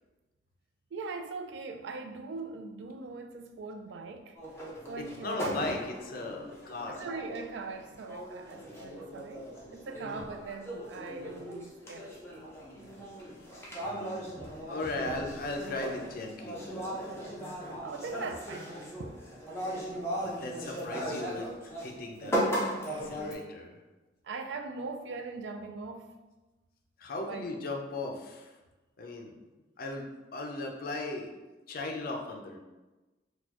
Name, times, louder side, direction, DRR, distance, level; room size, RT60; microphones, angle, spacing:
voice 1, 0.9-4.3 4.9-5.7 6.9-12.5 17.8-18.7 24.2-26.1 27.3-27.7, right 4 dB, 80° right, 0.4 m, -41 dB
sound 1, 4.4-21.9 22.2-23.3, equal, 15° left, 0.7 m, -38 dB
voice 2, 5.2-7.0 10.0-10.2 13.8-17.2 20.1-22.6 22.9-23.8 27.0-28.6 29.0-29.4 29.8-31.3 31.7-32.6, left 2 dB, 55° left, 0.5 m, -38 dB
4.1 x 2.3 x 2.9 m
head